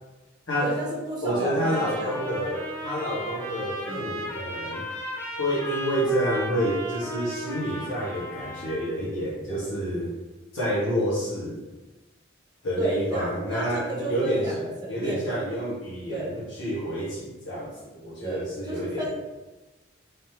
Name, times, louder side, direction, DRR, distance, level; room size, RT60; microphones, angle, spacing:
voice 1, 0.6-2.5 3.9-4.2 9.5-9.7 12.8-15.4 16.1-16.4 18.2-19.1, right 2 dB, 20° right, -3 dB, 0.9 m, -32 dB
voice 2, 1.2-4.8 5.4-10.1 10.5-11.6 12.6-19.1, equal, 80° left, -7 dB, 1.5 m, -29 dB
Trumpet, 1.5-8.9, equal, 10° left, 0.6 m, -35 dB
4.0 x 3.4 x 2.9 m, 1.1 s
head